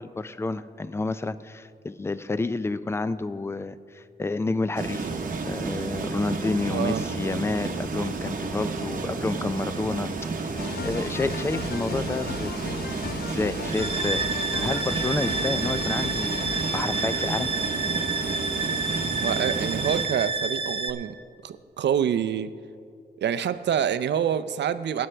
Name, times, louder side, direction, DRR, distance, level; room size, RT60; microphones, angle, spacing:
voice 1, 0.0-5.1 5.5-10.1 10.4-12.7 13.1-17.5, left 3 dB, 15° left, 14 dB, 0.3 m, -30 dB
sound 1, 4.8-20.1, right 4 dB, 50° right, 0.9 m, -31 dB
voice 2, 6.7-7.0 19.1-21.1 21.4-22.5 23.2-25.1, right 9 dB, 80° right, 12 dB, 0.5 m, -26 dB
sound 2, 10.6-16.8, left 6 dB, 60° left, 0.6 m, -37 dB
sound 3, 13.7-20.9, right 3 dB, 30° right, 0.6 m, -29 dB
21.5 x 9.4 x 3.3 m, 2.3 s
wide cardioid pair, 140°, 18 cm